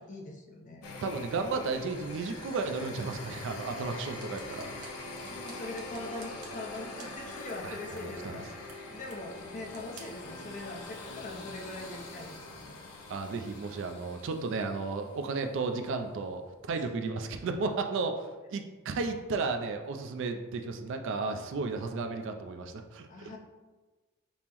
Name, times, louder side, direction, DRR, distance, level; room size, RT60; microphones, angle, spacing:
voice 1, 0.0-0.8 5.0-12.8 21.7-21.9 23.1-23.4, left 2 dB, 35° left, 0 dB, 0.5 m, -42 dB
sound 1, 0.8-15.6, left 2 dB, 90° left, 0.5 m, -44 dB
voice 2, 1.0-4.7 7.6-8.4 13.1-16.4 16.7-23.1, right 4 dB, 55° right, 6 dB, 0.3 m, -33 dB
sound 2, 3.8-10.3, right 5 dB, 85° right, 0.6 m, -56 dB
5.3 x 2.0 x 2.9 m, 1.3 s
head